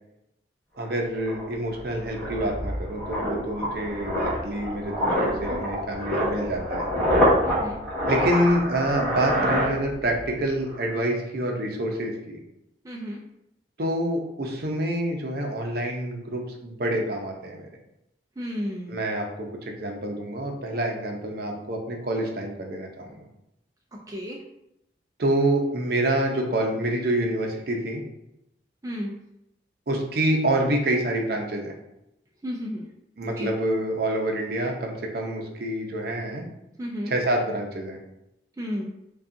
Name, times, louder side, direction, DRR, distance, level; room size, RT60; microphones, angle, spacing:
voice 1, 0.8-6.9 8.1-12.4 13.8-17.7 18.9-23.1 25.2-28.0 29.9-31.7 33.2-36.4 37.1-38.0, right 1 dB, 60° right, 1 dB, 0.6 m, -27 dB
sound 1, 0.9-1.0 1.3-10.3 10.6-10.8, equal, 10° left, 1.4 m, -26 dB
voice 2, 7.4-7.8 12.8-13.2 18.4-19.0 24.1-24.4 28.8-29.1 32.4-32.9 33.2-33.5 36.8-37.1 38.6-38.9, equal, 20° right, -1 dB, 0.4 m, -32 dB
5.3 x 2.3 x 2.6 m, 0.86 s
head